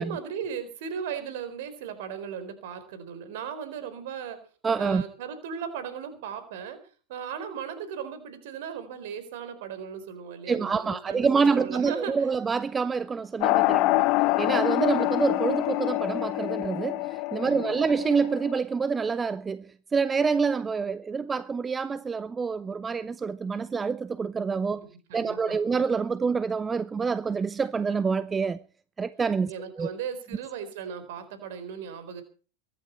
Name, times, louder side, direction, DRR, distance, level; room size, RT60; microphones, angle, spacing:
voice 1, 0.0-4.5 4.8-6.8 7.1-12.3 13.6-14.1 17.4-17.7 24.9-25.6 29.5-32.2, right 7 dB, 50° right, 4.1 m, -37 dB
voice 2, 4.6-5.0 10.5-14.0 14.4-24.9 25.1-28.6 29.0-29.5 29.8-29.9, right 5 dB, 15° right, 0.6 m, -27 dB
sound 1, 13.4-18.6, left 21 dB, 40° left, 0.8 m, -26 dB
23.0 x 11.0 x 4.5 m
figure-of-eight pair, 90°, 0 cm